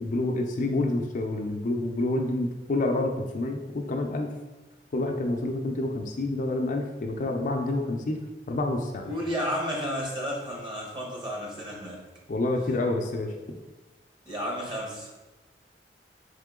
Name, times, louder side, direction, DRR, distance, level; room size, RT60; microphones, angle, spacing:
voice 1, 0.0-4.3 4.9-8.2 8.5-9.1 12.3-13.3, left 2 dB, 45° left, 2 dB, 0.4 m, -28 dB
voice 2, 9.0-12.0 14.3-15.1, equal, 30° right, -2 dB, 1.1 m, -32 dB
3.7 x 3.7 x 3.6 m, 1.2 s
head